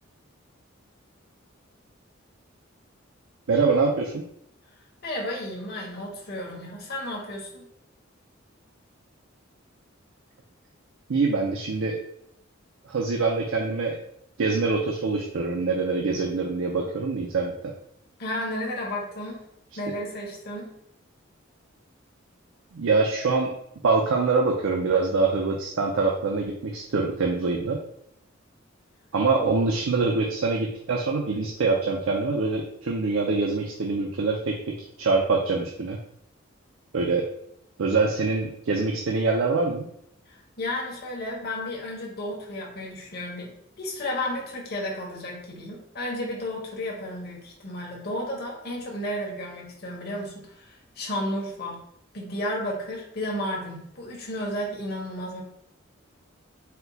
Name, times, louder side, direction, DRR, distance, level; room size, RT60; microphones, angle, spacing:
voice 1, 3.5-4.2 11.1-12.0 12.9-14.0 14.4-17.7 22.7-23.5 23.8-27.8 29.1-34.6 35.0-36.0 36.9-37.3 37.8-39.9, right 4 dB, 85° right, 0 dB, 0.5 m, -24 dB
voice 2, 4.7-7.7 18.2-19.5 19.8-20.7 29.4-29.5 40.3-43.5 43.8-51.8 52.1-55.4, left 1 dB, 55° left, -2 dB, 1.1 m, -33 dB
4.3 x 2.2 x 3.9 m, 0.73 s
head